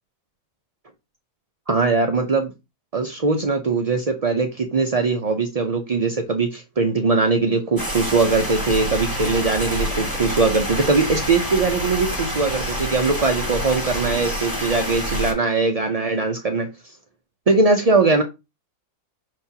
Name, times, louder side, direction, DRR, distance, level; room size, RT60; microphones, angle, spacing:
voice 1, 1.7-2.5 2.9-16.9 17.5-18.2, right 3 dB, 65° right, 0.3 m, -21 dB
sound 1, 7.8-15.3, equal, 10° left, 3.1 m, -27 dB
6.1 x 5.7 x 2.8 m
omnidirectional pair, 1.7 m